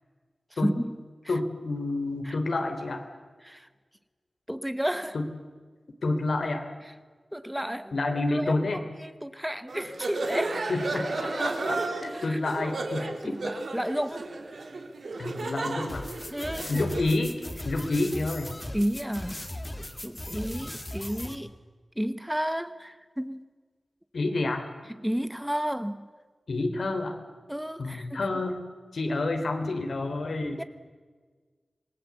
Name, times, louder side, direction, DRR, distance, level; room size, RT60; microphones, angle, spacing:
voice 1, 0.6-1.0 2.2-2.4 3.4-3.7 4.5-5.1 7.3-8.0 8.3-10.6 12.1-12.4 13.0-14.3 16.3-16.8 18.7-19.4 20.0-21.5 22.0-23.4 25.0-26.1 27.5-28.2 30.5-30.6, equal, 5° right, 12 dB, 1.0 m, -32 dB
voice 2, 1.3-3.0 5.1-5.3 6.0-6.7 7.9-8.8 10.7-13.4 15.2-16.1 16.7-17.4 17.6-18.6 24.1-24.7 26.5-27.2 27.8-28.6 28.9-30.6, left 2 dB, 80° left, 6 dB, 3.2 m, -29 dB
sound 1, 9.7-17.1, right 3 dB, 75° right, 2.8 m, -33 dB
sound 2, 15.9-21.4, left 1 dB, 25° left, 2.1 m, -38 dB
26.5 x 20.0 x 8.3 m, 1.5 s
wide cardioid pair, 95°, 0 cm